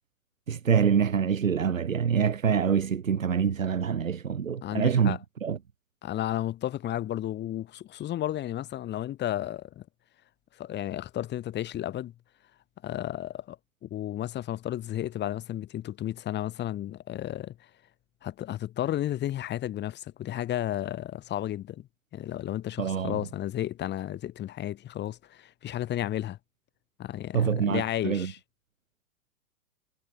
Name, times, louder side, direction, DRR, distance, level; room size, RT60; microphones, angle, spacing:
voice 1, 0.5-5.6 22.8-23.2 27.3-28.3, right 7 dB, 70° right, 6.2 m, -26 dB
voice 2, 4.6-5.2 6.0-9.8 10.6-12.1 12.8-13.6 13.8-17.6 18.2-21.9 22.1-26.4 27.0-28.4, left 12 dB, 25° left, 5.4 m, -33 dB
figure-of-eight pair, 105°, 40 cm